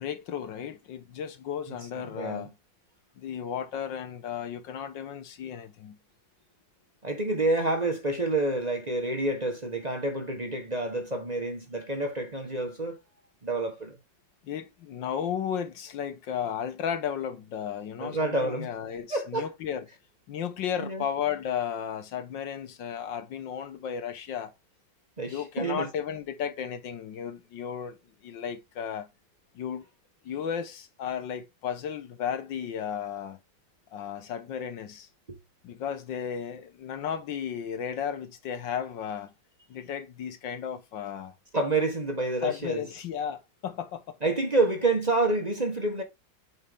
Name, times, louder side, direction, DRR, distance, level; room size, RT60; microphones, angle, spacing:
voice 1, 0.0-2.5 3.2-6.0 14.4-19.9 20.3-24.5 25.3-29.1 29.5-29.9 30.2-33.4 33.9-35.1 35.6-39.3 39.7-41.3 42.4-44.2, left 8 dB, 85° left, 1.8 m, -34 dB
voice 2, 1.7-2.5 7.0-13.0 13.4-14.0 18.0-18.7 19.1-19.5 20.8-21.0 25.2-25.9 35.3-35.4 41.5-42.8 44.2-46.0, right 2 dB, 25° right, 1.2 m, -28 dB
8.1 x 5.5 x 3.6 m
omnidirectional pair, 2.0 m